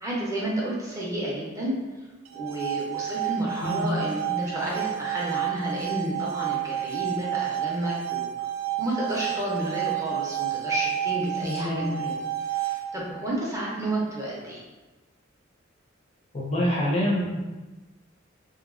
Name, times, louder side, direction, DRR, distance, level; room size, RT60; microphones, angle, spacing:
voice 1, 0.0-1.7 2.3-8.3 8.8-12.2 12.5-14.6, right 1 dB, 15° right, -5 dB, 0.6 m, -31 dB
sound 1, 2.3-13.2, right 12 dB, 90° right, 0.3 m, -30 dB
voice 2, 11.4-11.8 16.3-17.4, equal, 35° left, -3 dB, 0.5 m, -26 dB
2.8 x 2.6 x 2.5 m, 1.2 s
head